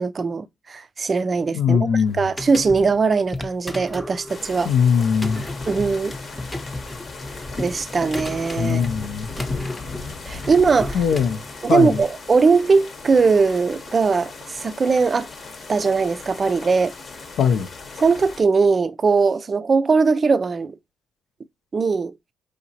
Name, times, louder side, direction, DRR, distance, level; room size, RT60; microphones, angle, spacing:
voice 1, 0.0-4.7 5.7-6.2 7.6-8.9 10.3-11.0 11.6-15.3 15.7-16.9 18.0-20.7 21.7-22.1, right 4 dB, 35° right, 0.3 m, -20 dB
voice 2, 1.5-2.2 4.6-5.5 8.6-9.3 10.9-11.4 11.7-12.0 17.4-17.7, left 7 dB, 75° left, 0.5 m, -20 dB
sound 1, 2.1-12.0, left 2 dB, 15° left, 0.6 m, -33 dB
sound 2, 4.3-18.4, left 4 dB, 50° left, 0.8 m, -38 dB
5.0 x 2.8 x 2.7 m
cardioid pair, 90°, 0 cm